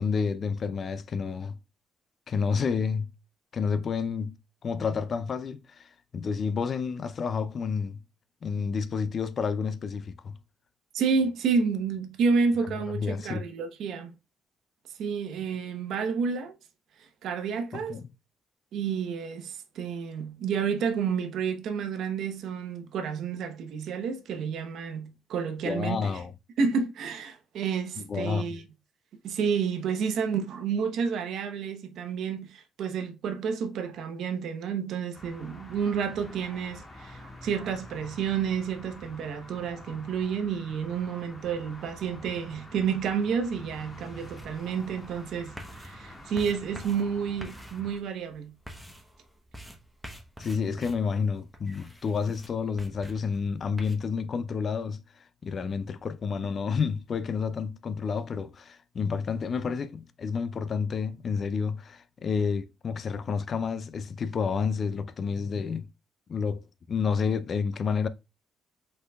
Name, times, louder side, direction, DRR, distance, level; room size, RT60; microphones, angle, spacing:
voice 1, 0.0-1.6 2.3-3.1 3.5-8.0 8.4-10.3 12.9-13.4 17.7-18.1 25.6-26.3 28.0-28.5 50.4-65.9 66.3-68.1, left 5 dB, 50° left, 0.4 m, -30 dB
voice 2, 10.9-14.1 15.0-16.6 17.0-18.0 18.7-26.1 26.6-28.6 29.2-48.5, right 6 dB, 75° right, 0.9 m, -30 dB
sound 1, 35.1-48.0, left 1 dB, 25° left, 1.6 m, -47 dB
sound 2, 44.4-54.0, equal, 5° right, 1.0 m, -47 dB
5.2 x 4.0 x 2.3 m
cardioid pair, 90°, 0 cm